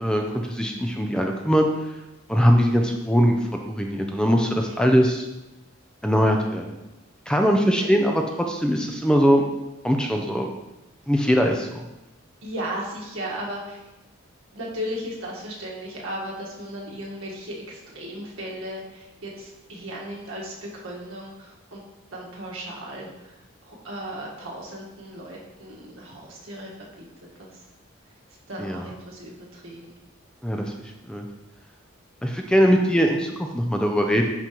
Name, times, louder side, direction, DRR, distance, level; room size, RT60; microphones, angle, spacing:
voice 1, 0.0-1.7 2.3-3.3 3.6-5.3 6.0-6.6 7.3-9.4 9.8-10.5 11.1-11.7 28.6-28.9 30.4-30.7 31.1-31.3 32.2-34.3, equal, 5° left, 2 dB, 0.4 m, -21 dB
voice 2, 12.4-13.8 14.5-21.8 22.1-23.3 23.6-26.7 27.0-27.1 27.4-27.5 28.5-30.0, equal, 85° right, -3 dB, 1.5 m, -36 dB
10.0 x 3.8 x 3.0 m, 0.98 s
head